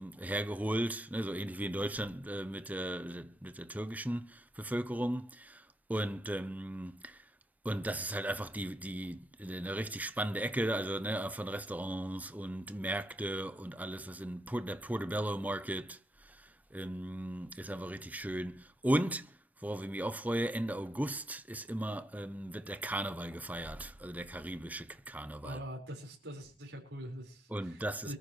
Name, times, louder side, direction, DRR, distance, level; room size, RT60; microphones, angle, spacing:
voice 1, 0.0-5.6 5.9-7.2 7.6-19.3 19.6-25.6 27.5-28.1, right 1 dB, 10° right, 0.7 m, -36 dB
voice 2, 25.4-28.1, equal, 90° right, 4.9 m, -44 dB
23.5 x 14.0 x 3.2 m
head